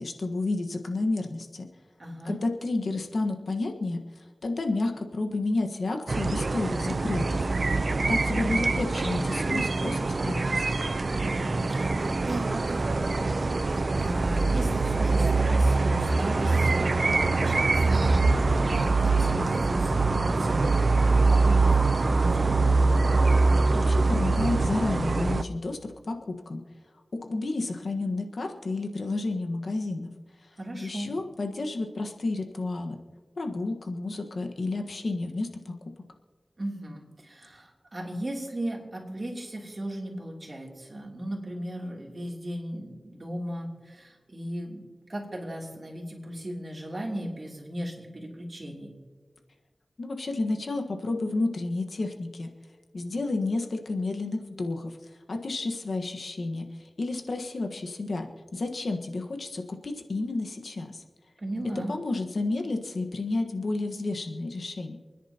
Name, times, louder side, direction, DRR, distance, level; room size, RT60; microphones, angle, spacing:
voice 1, 0.0-1.7 2.2-7.5 8.1-10.7 23.7-26.6 27.3-30.1 30.7-33.0 33.4-35.7 50.0-52.5 52.9-55.0 55.3-61.0 61.9-65.0, left 2 dB, 80° left, 4 dB, 1.4 m, -31 dB
voice 2, 2.0-2.4 11.2-22.7 30.6-31.1 36.6-44.8 45.1-48.9 61.4-61.9, right 1 dB, 45° right, -1 dB, 3.1 m, -37 dB
sound 1, 6.1-25.4, right 3 dB, 65° right, 0.6 m, -24 dB
28.5 x 10.0 x 2.9 m, 1.4 s
wide cardioid pair, 60°, 0 cm